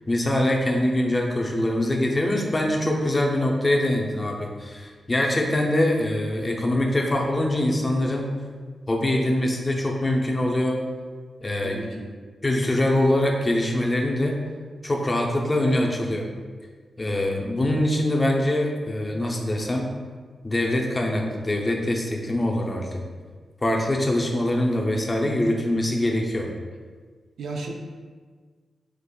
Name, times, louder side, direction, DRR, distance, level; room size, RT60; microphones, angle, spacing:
voice 1, 0.1-8.3 8.9-10.8 11.4-11.7 12.4-14.4 14.8-16.3 17.0-19.9 20.4-23.0 23.6-26.5, left 1 dB, 25° left, 1 dB, 0.5 m, -23 dB
voice 2, 11.6-12.2 27.4-27.7, right 3 dB, 80° right, 2 dB, 0.4 m, -34 dB
5.1 x 2.4 x 2.2 m, 1.5 s
cardioid pair, 90°, 0 cm